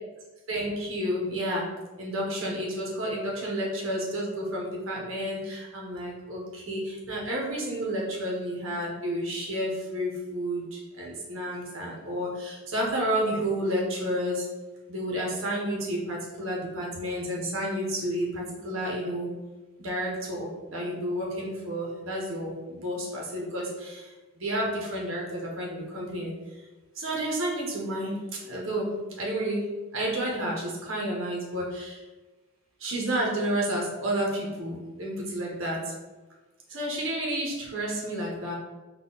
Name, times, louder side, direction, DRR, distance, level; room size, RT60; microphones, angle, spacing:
voice 1, 0.5-1.7 2.0-14.5 14.9-19.3 19.8-26.3 26.9-29.7 29.9-32.0 32.8-35.8 36.7-38.5, right 1 dB, 70° right, -2 dB, 1.0 m, -31 dB
4.2 x 2.6 x 3.9 m, 1.2 s
head